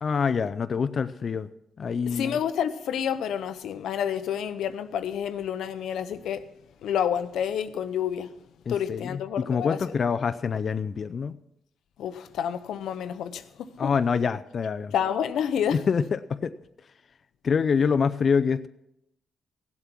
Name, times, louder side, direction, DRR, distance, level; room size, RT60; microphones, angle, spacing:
voice 1, 0.0-1.5 1.8-2.4 8.7-11.4 13.8-14.9 15.7-16.5 17.4-18.7, left 6 dB, 50° left, 0.5 m, -26 dB
voice 2, 2.1-6.5 6.8-8.3 8.7-9.8 12.0-13.9 14.9-15.8, left 9 dB, 90° left, 0.7 m, -29 dB
16.5 x 8.0 x 6.0 m
cardioid pair, 90°, 0 cm